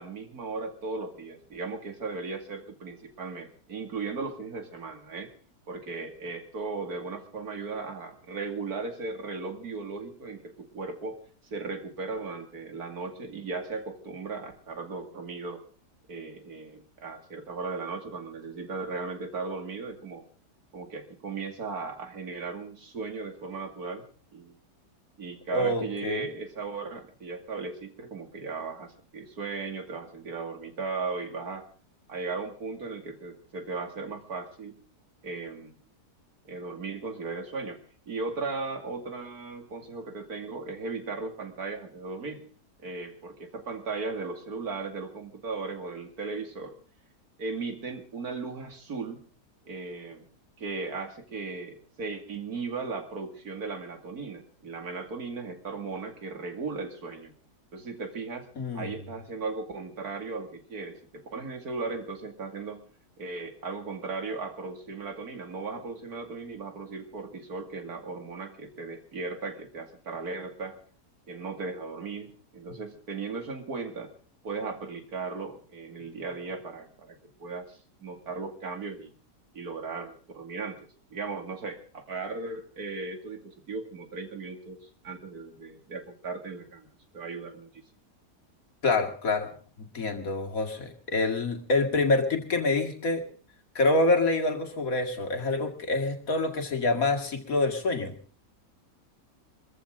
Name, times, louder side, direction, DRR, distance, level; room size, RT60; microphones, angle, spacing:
voice 1, 0.0-5.3 5.7-11.2 11.4-15.6 16.1-20.2 20.7-24.1 24.3-24.6 25.2-31.7 32.1-34.8 35.2-35.8 36.4-37.8 38.1-42.4 42.8-46.7 47.4-49.2 49.6-50.3 50.6-57.3 57.7-58.5 58.7-62.9 63.2-70.8 71.3-74.1 74.4-79.1 79.5-84.8 85.0-87.8, right 4 dB, 65° right, 5 dB, 2.9 m, -37 dB
voice 2, 25.5-26.3 58.6-58.9 88.8-89.5 89.8-93.2 93.7-98.1, left 2 dB, 55° left, 4 dB, 2.6 m, -26 dB
24.0 x 14.5 x 3.8 m, 0.41 s
omnidirectional pair, 1.7 m